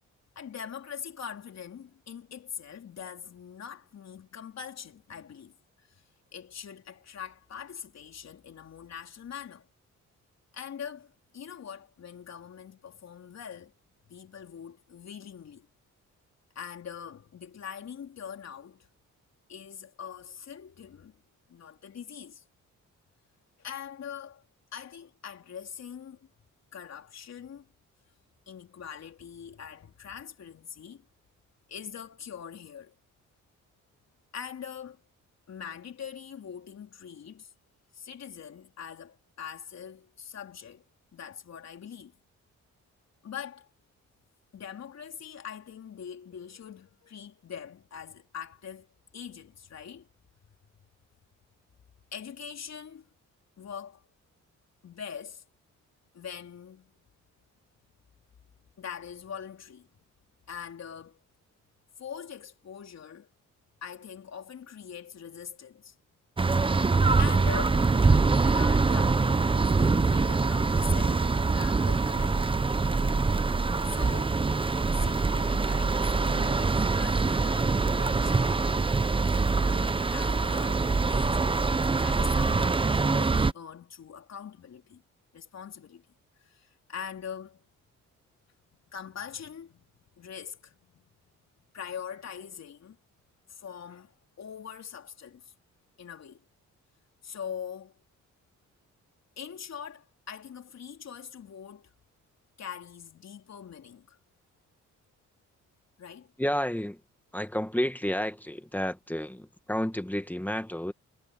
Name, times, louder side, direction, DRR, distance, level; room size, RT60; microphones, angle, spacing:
voice 1, 0.4-6.0 6.3-9.7 10.5-13.7 14.1-15.7 16.6-18.9 19.5-21.2 21.5-22.4 23.6-24.4 24.7-26.3 26.7-27.7 28.5-31.1 31.7-33.0 34.3-35.0 35.5-37.5 37.9-40.8 41.1-42.2 43.2-43.7 44.5-48.9 49.1-50.1 52.1-53.1 53.6-54.0 54.8-55.5 56.1-56.9 58.8-59.9 60.5-61.2 62.0-63.3 63.8-66.0 67.2-72.5 73.8-74.4 74.9-78.8 79.2-85.0 85.3-86.1 86.4-87.7 88.9-89.8 90.2-91.0 91.7-93.0 93.5-95.5 96.0-96.4 97.2-98.0 99.4-101.9 102.6-104.2 106.0-106.3, left 8 dB, 60° left, 3.9 m, -43 dB
sound 1, 66.4-83.5, right 4 dB, 15° right, 0.7 m, -24 dB
voice 2, 106.4-107.0 107.3-110.9, equal, 5° left, 1.6 m, -31 dB
cardioid pair, 105°, 30 cm